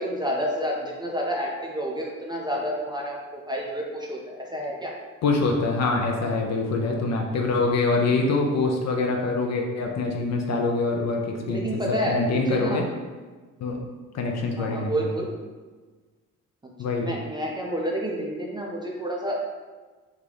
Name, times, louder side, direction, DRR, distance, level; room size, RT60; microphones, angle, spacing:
voice 1, 0.0-4.9 11.5-12.8 14.2-14.3 14.6-15.3 17.0-19.4, equal, 10° right, -2 dB, 0.5 m, -29 dB
voice 2, 5.2-12.8 13.6-13.8 14.1-14.9 16.8-17.2, left 3 dB, 40° left, 1 dB, 0.5 m, -25 dB
3.6 x 2.3 x 3.3 m, 1.3 s
figure-of-eight pair, 45°, 43 cm